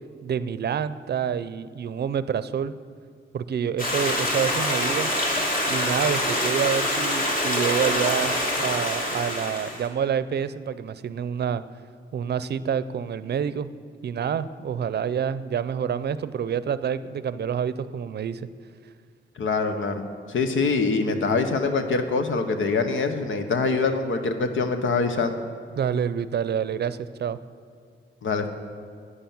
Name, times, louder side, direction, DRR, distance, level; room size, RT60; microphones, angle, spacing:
voice 1, 0.2-2.7 3.3-5.1 5.7-11.6 12.1-13.7 14.0-18.5 25.8-27.4, right 8 dB, 55° right, 15 dB, 0.5 m, -27 dB
Stream, 3.8-9.9, left 1 dB, 45° left, 2.6 m, -25 dB
voice 2, 19.4-25.4 28.2-28.5, left 4 dB, 90° left, 7 dB, 1.2 m, -24 dB
11.5 x 9.8 x 7.2 m, 2.3 s
wide cardioid pair, 150°, 20 cm